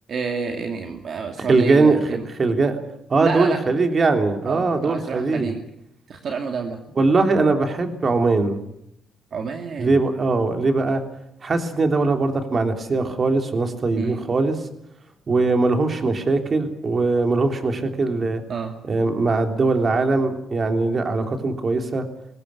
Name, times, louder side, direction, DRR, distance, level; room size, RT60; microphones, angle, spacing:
voice 1, 0.1-2.2 3.2-3.6 4.4-5.6 6.1-6.8 9.3-10.0 14.0-14.2 18.5-18.7 21.2-21.3, right 5 dB, 55° right, 4 dB, 2.5 m, -28 dB
voice 2, 1.4-2.0 2.3-2.8 3.1-5.5 7.0-8.6 9.8-11.0 11.4-14.6 15.3-18.4 18.8-22.1, right 3 dB, 40° right, 6 dB, 3.3 m, -21 dB
21.5 x 17.5 x 9.8 m, 0.80 s
cardioid pair, 90°, 0 cm